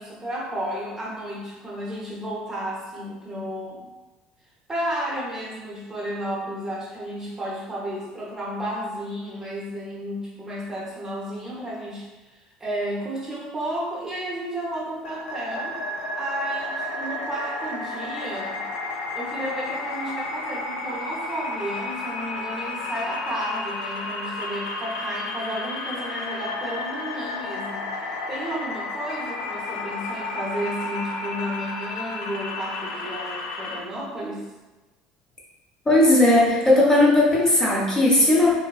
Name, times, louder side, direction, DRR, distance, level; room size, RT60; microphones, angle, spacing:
voice 1, 0.0-3.9 4.7-12.1 12.6-15.8 16.1-18.6 19.1-27.9 28.3-34.4, equal, 20° right, -6 dB, 0.8 m, -32 dB
sound 1, 15.0-33.8, left 2 dB, 75° left, 0.4 m, -32 dB
voice 2, 35.9-38.5, left 1 dB, 20° left, -5 dB, 0.8 m, -17 dB
2.5 x 2.2 x 2.4 m, 1.2 s
hypercardioid pair, 80°, 3 cm